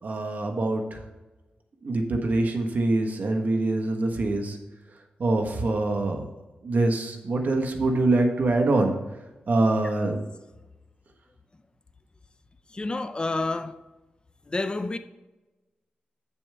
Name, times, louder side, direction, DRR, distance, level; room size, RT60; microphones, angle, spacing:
voice 1, 0.0-1.0 1.8-4.6 5.2-6.3 6.6-8.9 9.5-10.2, right 2 dB, 60° right, 1.3 m, -24 dB
voice 2, 12.7-13.8 14.5-15.0, left 2 dB, 30° left, 0.5 m, -29 dB
8.8 x 7.0 x 3.5 m
wide cardioid pair, 85°, 3 cm